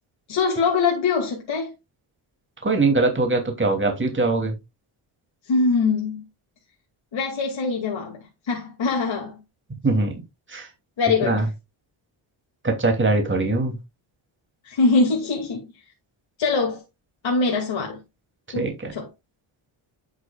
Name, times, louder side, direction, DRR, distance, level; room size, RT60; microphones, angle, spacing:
voice 1, 0.3-1.7 5.5-6.2 7.1-8.2 8.5-9.4 11.0-11.4 14.6-15.7 16.4-16.8 17.2-18.0 18.5-19.1, left 4 dB, 65° left, 2.5 m, -23 dB
voice 2, 2.6-4.6 9.8-10.2 10.5-10.7 11.2-11.5 12.6-13.8 18.5-18.9, right 3 dB, 25° right, 2.8 m, -22 dB
11.0 x 6.5 x 2.4 m
cardioid pair, 105°, 49 cm